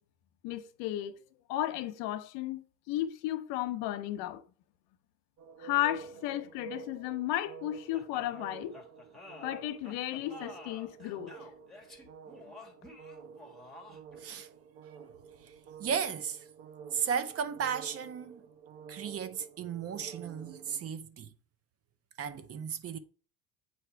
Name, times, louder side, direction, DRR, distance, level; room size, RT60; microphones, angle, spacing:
voice 1, 0.4-1.2 1.5-2.6 2.9-4.4 5.6-8.8 9.4-11.3, left 13 dB, 80° left, 0.8 m, -34 dB
sound 1, 5.4-20.9, right 6 dB, 80° right, 1.1 m, -50 dB
sound 2, 7.9-14.2, left 2 dB, ahead, 1.3 m, -50 dB
voice 2, 15.8-16.4 16.9-18.4 18.9-21.3 22.2-23.0, right 7 dB, 35° right, 0.6 m, -35 dB
7.9 x 2.7 x 4.5 m
cardioid pair, 115°, 41 cm